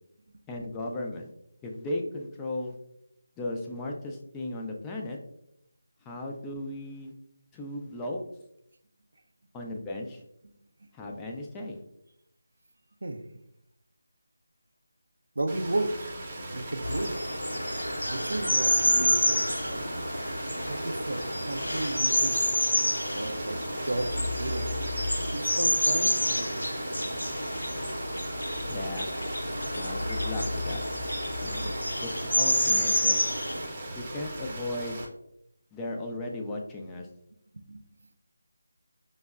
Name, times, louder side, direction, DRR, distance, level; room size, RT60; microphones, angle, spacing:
voice 1, 0.5-1.3 1.6-2.8 3.4-5.2 6.1-7.1 7.5-8.2 9.5-10.2 10.9-11.8 28.7-29.1 29.7-30.8 31.4-31.7 32.0-33.2 34.0-35.0 35.7-37.1, left 1 dB, 10° left, 0 dB, 0.3 m, -36 dB
voice 2, 15.4-16.1 16.5-17.1 18.1-19.8 20.6-22.5 23.1-26.7 26.9-27.1 37.5-37.8, right 2 dB, 65° right, 7 dB, 0.4 m, -34 dB
sound 1, 15.5-35.1, right 1 dB, 25° right, 0.7 m, -39 dB
sound 2, 16.8-33.7, left 1 dB, 90° left, 0.7 m, -28 dB
5.1 x 2.1 x 2.3 m, 0.78 s
figure-of-eight pair, 160°, 0 cm